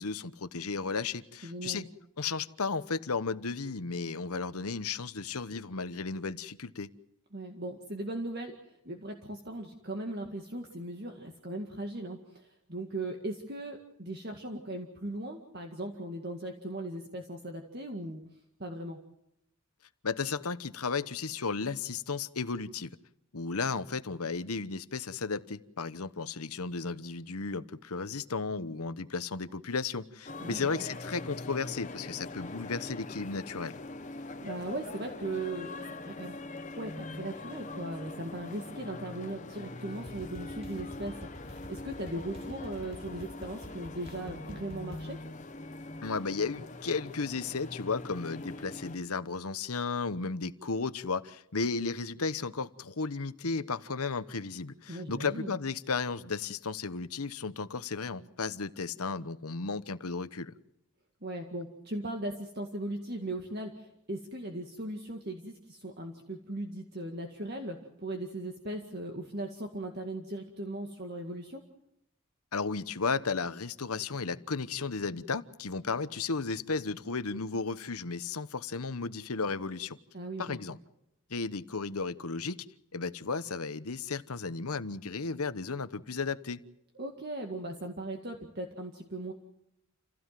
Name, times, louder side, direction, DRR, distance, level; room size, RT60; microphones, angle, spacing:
voice 1, 0.0-1.9 2.2-6.9 20.0-22.9 23.3-33.8 46.0-60.5 72.5-80.0 80.4-80.8 81.3-82.7 82.9-86.6, left 4 dB, 85° left, 13 dB, 1.1 m, -34 dB
voice 2, 1.4-1.9 7.3-18.2 18.6-19.0 30.4-30.8 34.2-35.7 36.0-36.4 36.8-45.2 54.9-55.5 61.2-71.6 80.1-80.6 87.0-89.3, right 1 dB, 45° right, 3 dB, 2.0 m, -38 dB
sound 1, 30.3-49.0, left 2 dB, 35° left, 1.0 m, -43 dB
sound 2, 40.1-45.1, right 1 dB, 25° right, 2.2 m, -48 dB
28.5 x 16.0 x 7.6 m, 0.82 s
head